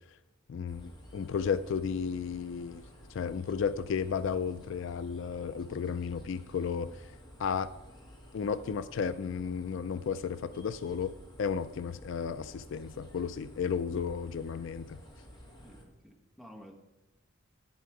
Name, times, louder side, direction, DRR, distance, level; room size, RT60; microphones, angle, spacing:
voice 1, 0.5-2.8 3.1-7.0 7.4-7.7 8.3-11.1 11.4-15.0, left 6 dB, 60° left, 14 dB, 0.3 m, -33 dB
sound 1, 0.7-15.8, equal, 20° left, 1.5 m, -53 dB
voice 2, 15.6-16.7, equal, ahead, 1 dB, 1.1 m, -52 dB
11.0 x 8.4 x 4.7 m, 1.1 s
head